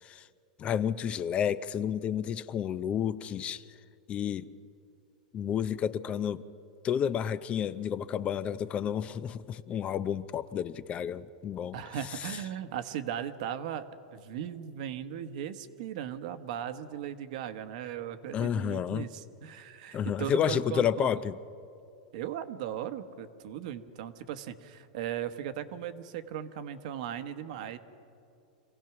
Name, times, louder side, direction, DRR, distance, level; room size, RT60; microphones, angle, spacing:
voice 1, 0.6-3.6 4.1-4.5 5.3-6.4 6.8-11.8 12.1-12.4 18.3-19.1 19.9-21.4, left 8 dB, 30° left, 0.5 m, -31 dB
voice 2, 11.7-13.9 14.1-21.1 22.1-27.8, right 10 dB, 65° right, 1.2 m, -37 dB
26.0 x 16.5 x 6.0 m
supercardioid pair, 135°, 4 cm